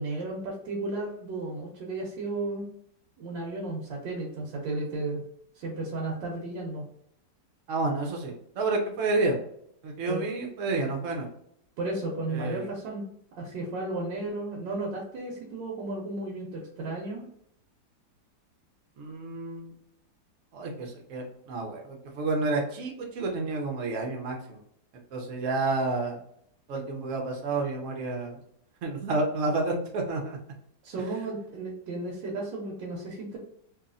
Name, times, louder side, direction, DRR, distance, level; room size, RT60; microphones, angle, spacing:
voice 1, 0.0-2.7 3.2-5.2 5.5-6.9 10.1-10.3 11.8-13.0 13.4-17.3 30.8-33.4, right 2 dB, 90° right, -3 dB, 1.4 m, -34 dB
voice 2, 7.7-9.4 9.8-11.3 12.3-12.7 19.0-19.7 20.5-24.6 25.1-26.2 26.7-28.4 28.8-30.4, right 3 dB, 65° right, 1 dB, 0.8 m, -30 dB
3.0 x 2.6 x 2.5 m, 0.71 s
omnidirectional pair, 2.0 m